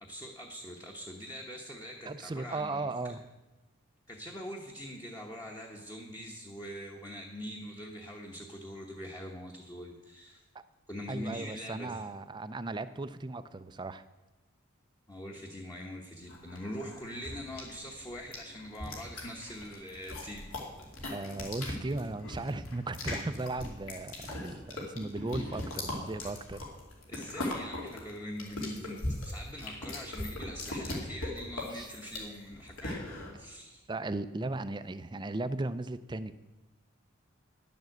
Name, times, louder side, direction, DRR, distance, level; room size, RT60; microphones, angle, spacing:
voice 1, 0.0-2.9 4.1-10.4 10.9-12.0 15.1-20.5 27.1-33.1 33.4-33.8, equal, 20° left, 0 dB, 1.0 m, -43 dB
voice 2, 2.1-3.2 10.5-10.6 11.1-14.0 21.1-26.6 31.7-31.9 33.9-36.3, right 2 dB, 20° right, 13 dB, 0.4 m, -36 dB
sound 1, 16.3-33.3, left 1 dB, 75° left, 2.7 m, -39 dB
11.0 x 7.3 x 7.8 m, 1.1 s
head